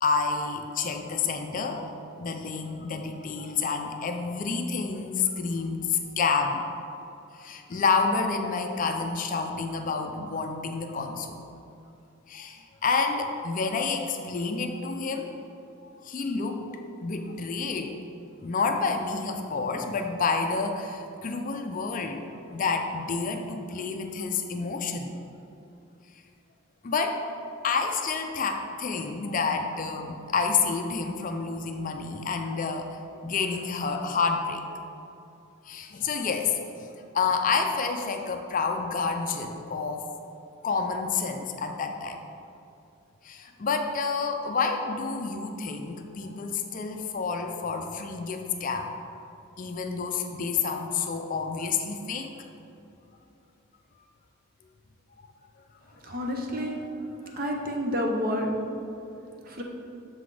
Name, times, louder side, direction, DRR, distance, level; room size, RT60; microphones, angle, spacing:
voice 1, 0.0-1.9 2.2-6.6 7.3-11.4 12.3-15.3 15.8-16.7 17.0-18.0 18.4-22.2 22.5-25.1 26.8-27.2 27.6-34.8 35.6-40.1 40.6-42.2 43.2-48.9 49.6-52.3 55.2-55.3 56.1-56.2 56.8-56.9 57.2-57.4, left 4 dB, 40° left, 5 dB, 0.4 m, -29 dB
voice 2, 56.0-56.8 57.4-58.5 59.4-59.6, equal, 40° right, 1 dB, 0.7 m, -29 dB
6.7 x 4.0 x 4.8 m, 2.6 s
head